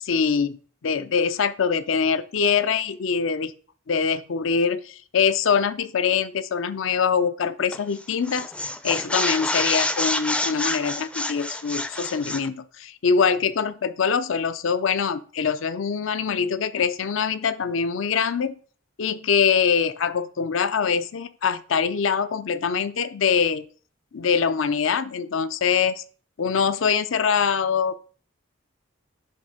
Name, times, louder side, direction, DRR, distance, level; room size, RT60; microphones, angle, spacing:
voice 1, 0.0-3.5 3.9-8.5 8.8-18.5 19.0-23.6 24.1-26.0 26.4-28.0, left 6 dB, 70° left, 14 dB, 0.5 m, -23 dB
sound 1, 7.7-8.0 8.3-12.5, left 1 dB, 5° left, 0.4 m, -27 dB
10.0 x 3.7 x 4.9 m, 0.43 s
head